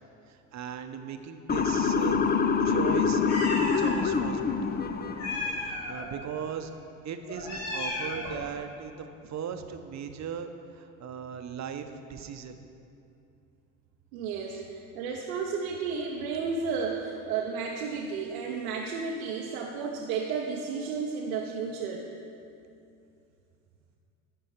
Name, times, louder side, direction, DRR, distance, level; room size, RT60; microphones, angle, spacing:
voice 1, 0.3-2.2 2.6-3.2 3.6-4.7 5.6-6.7 7.0-12.6 14.5-14.6, right 7 dB, 40° right, 7 dB, 0.8 m, -38 dB
Motor vehicle (road) / Siren, 1.5-5.6, left 5 dB, 25° left, 0.5 m, -26 dB
Meow, 3.3-3.9 5.1-6.1 7.3-8.4, left 2 dB, 65° left, 2.4 m, -34 dB
voice 2, 14.1-22.1, right 5 dB, 80° right, -1 dB, 0.8 m, -32 dB
11.5 x 4.7 x 6.0 m, 2.6 s
hypercardioid pair, 70°, 42 cm